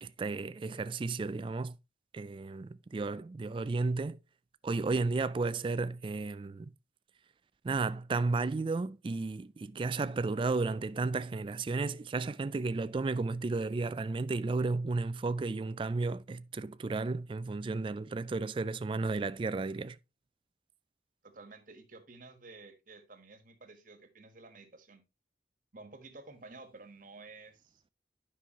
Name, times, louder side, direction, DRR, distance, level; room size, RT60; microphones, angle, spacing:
voice 1, 0.0-1.7 2.1-4.2 4.6-6.7 7.6-20.0, right 3 dB, 30° right, 0.3 m, -33 dB
voice 2, 21.2-25.0 25.7-27.8, right 3 dB, 45° right, 1.4 m, -52 dB
10.0 x 5.5 x 2.9 m
head